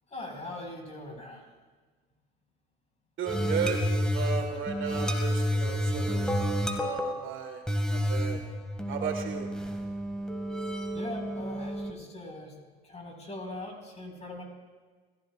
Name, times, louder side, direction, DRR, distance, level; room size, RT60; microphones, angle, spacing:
voice 1, 0.1-1.4 10.9-12.5 12.8-14.4, left 2 dB, 20° left, 1 dB, 5.2 m, -41 dB
voice 2, 3.2-6.3 6.7-7.6 7.9-8.6 8.9-9.5, right 6 dB, 40° right, 3 dB, 1.8 m, -35 dB
sound 1, 3.3-11.9, equal, ahead, 1.9 m, -30 dB
27.5 x 15.5 x 2.5 m, 1.4 s
hypercardioid pair, 80°, 30 cm